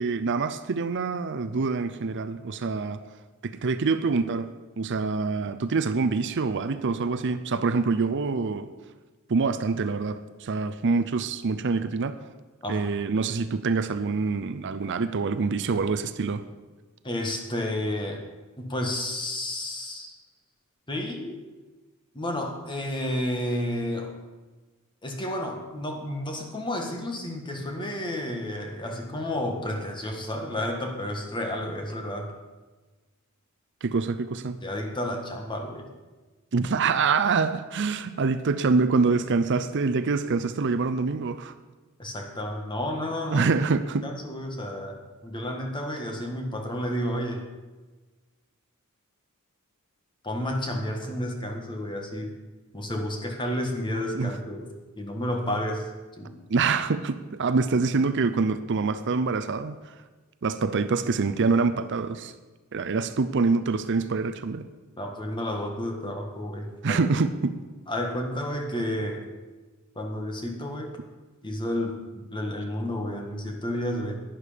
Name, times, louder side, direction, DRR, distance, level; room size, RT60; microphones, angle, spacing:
voice 1, 0.0-3.0 3.4-4.5 4.8-8.7 9.3-12.1 12.7-16.4 33.8-34.6 36.5-41.5 43.3-44.0 54.1-54.3 56.5-59.8 60.4-62.3 62.7-64.7 66.8-67.5, right 4 dB, 55° right, 11 dB, 0.5 m, -25 dB
voice 2, 17.0-18.2 18.6-20.2 20.9-21.4 22.1-24.1 25.0-32.3 34.6-35.9 42.0-43.5 44.0-47.5 50.2-52.4 52.7-55.9 56.2-56.4 65.0-67.0 67.9-69.2 69.9-71.0 71.4-74.2, left 1 dB, 20° left, 2 dB, 1.6 m, -31 dB
11.0 x 10.5 x 5.1 m, 1.3 s
head